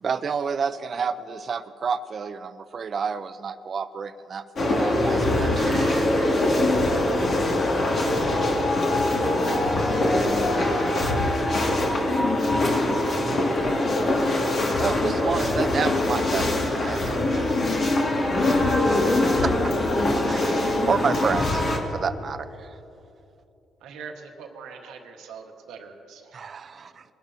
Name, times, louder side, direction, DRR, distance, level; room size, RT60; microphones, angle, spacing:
voice 1, 0.0-4.4 4.7-6.6 14.8-17.5 19.4-19.5 20.3-22.7 26.3-27.0, right 6 dB, 45° right, 12 dB, 0.6 m, -30 dB
sound 1, 4.6-21.8, left 1 dB, 50° left, 2.0 m, -23 dB
voice 2, 10.0-11.0 19.3-20.4, left 1 dB, 15° left, 3 dB, 0.8 m, -40 dB
voice 3, 23.8-26.3, right 5 dB, 85° right, 3 dB, 1.3 m, -42 dB
21.0 x 11.5 x 2.7 m, 2.8 s
cardioid pair, 90°, 0 cm